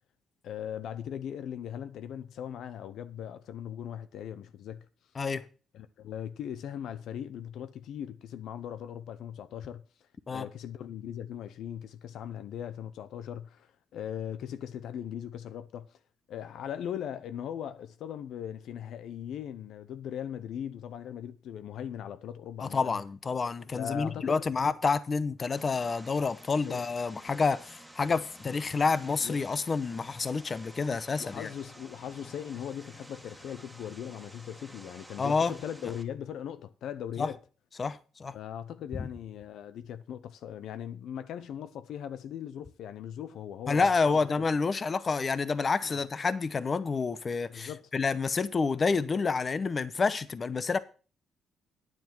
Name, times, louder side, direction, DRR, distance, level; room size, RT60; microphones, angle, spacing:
voice 1, 0.4-4.9 5.7-9.8 10.3-16.0 16.3-23.0 23.7-24.4 26.6-26.8 27.2-27.3 29.2-29.4 29.9-30.0 30.9-37.4 38.3-44.2 45.8-46.0 47.5-47.8, left 9 dB, 75° left, 0.7 m, -39 dB
voice 2, 22.6-31.5 35.2-35.5 37.2-37.3 37.8-38.4 39.0-39.1 43.7-50.8, left 4 dB, 35° left, 0.8 m, -29 dB
Vehicle, 25.6-36.0, right 1 dB, 5° right, 1.9 m, -51 dB
9.8 x 7.5 x 5.9 m
cardioid pair, 90°, 0 cm